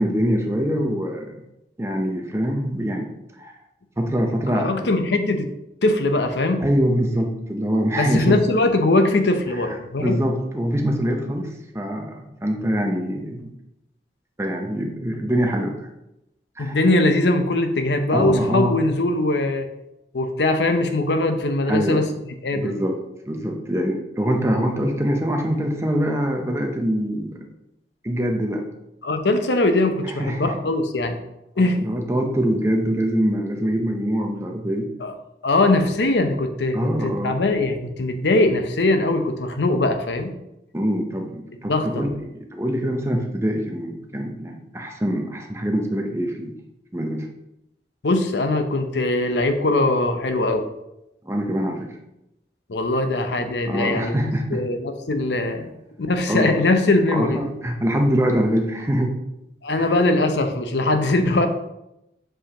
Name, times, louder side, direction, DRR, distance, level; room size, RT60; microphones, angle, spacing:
voice 1, 0.0-1.3 1.8-3.1 3.4-3.5 4.0-4.9 6.6-8.4 10.0-13.5 14.4-15.9 16.6-16.8 18.1-18.8 21.7-22.1 22.5-23.0 23.3-27.4 28.0-28.6 30.2-30.5 31.6-34.9 36.7-37.4 40.7-46.5 46.9-47.3 51.2-52.0 53.7-54.6 56.3-56.7 57.1-59.2 59.8-59.9, equal, 15° right, 3 dB, 0.7 m, -24 dB
voice 2, 4.5-5.5 5.8-6.6 8.0-10.2 16.6-19.7 20.1-22.1 22.4-22.7 29.0-31.2 31.6-31.8 35.0-35.1 35.4-40.3 41.7-42.0 48.0-50.6 52.7-54.2 54.5-55.7 56.0-57.4 59.6-61.5, left 2 dB, 85° left, 6 dB, 0.7 m, -21 dB
7.6 x 4.9 x 2.9 m, 0.87 s
head